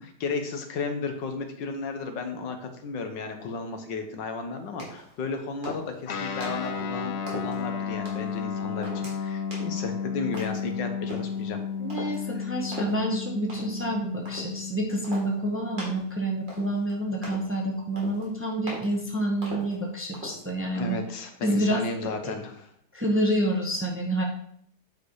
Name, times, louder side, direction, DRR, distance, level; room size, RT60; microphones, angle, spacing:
voice 1, 0.0-11.6 20.7-22.7, left 4 dB, 85° left, 6 dB, 1.8 m, -34 dB
sound 1, 4.8-5.1 5.6-6.0 6.4-6.7 7.3-7.6 8.0-8.3 8.8-9.1 9.5-9.8 10.3-10.7 11.1-11.3 11.9-12.2 12.7-13.0 13.5-13.8 14.2-14.5 15.0-15.3 15.8-16.1 16.5-16.9 17.2-17.5 18.0-18.3 18.7-18.9 19.4-19.8 20.1-20.4, equal, 25° right, 2.6 m, -39 dB
Guitar, 6.1-16.0, left 6 dB, 60° left, 0.7 m, -33 dB
voice 2, 11.8-21.0 21.4-22.3 22.9-24.2, right 1 dB, 10° right, 0 dB, 1.0 m, -28 dB
9.0 x 4.8 x 4.7 m, 0.65 s
omnidirectional pair, 1.9 m